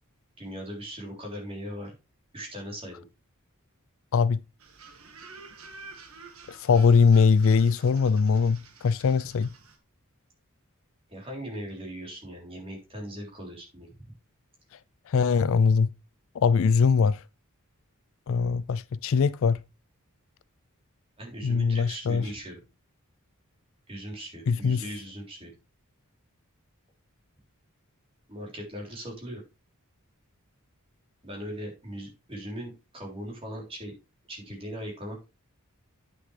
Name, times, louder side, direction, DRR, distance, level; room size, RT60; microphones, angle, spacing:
voice 1, 0.4-1.9 2.3-3.1 11.1-14.1 21.2-22.6 23.9-25.5 28.3-29.4 31.2-33.9 34.3-35.2, equal, 25° right, 3.5 m, -39 dB
voice 2, 4.1-4.4 6.5-9.5 15.1-15.9 16.3-17.2 18.3-19.6 21.4-22.3 24.5-24.8, left 5 dB, 65° left, 0.4 m, -22 dB
sound 1, 4.6-9.8, right 4 dB, 75° right, 1.7 m, -49 dB
9.6 x 6.4 x 3.3 m
head